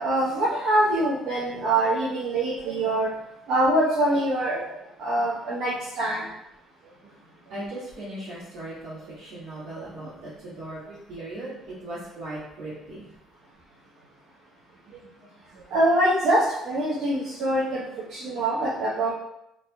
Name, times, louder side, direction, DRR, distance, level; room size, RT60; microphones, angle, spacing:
voice 1, 0.0-3.1 3.5-4.7 5.0-6.2 9.8-9.9 15.7-17.8 18.1-19.1, right 1 dB, 65° right, -9 dB, 0.8 m, -24 dB
voice 2, 7.5-10.8 11.1-13.1, right 1 dB, 90° right, -13 dB, 1.3 m, -38 dB
3.3 x 2.7 x 2.2 m, 0.82 s
cardioid pair, 115°, 0 cm